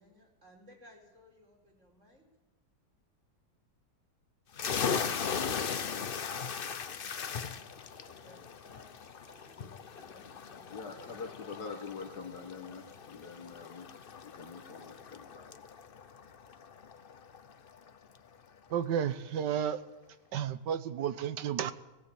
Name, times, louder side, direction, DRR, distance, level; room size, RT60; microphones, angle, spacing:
voice 1, 0.0-2.3 8.0-11.3, equal, 40° right, 0 dB, 4.8 m, -60 dB
sound 1, 4.5-17.9, left 6 dB, 45° left, 0.7 m, -38 dB
voice 2, 10.7-13.9 14.2-15.6, left 5 dB, 65° left, 1 dB, 1.9 m, -45 dB
voice 3, 18.7-19.8 20.3-21.7, right 9 dB, 75° right, 14 dB, 1.5 m, -32 dB
17.5 x 17.0 x 8.6 m, 1.1 s
omnidirectional pair, 1.9 m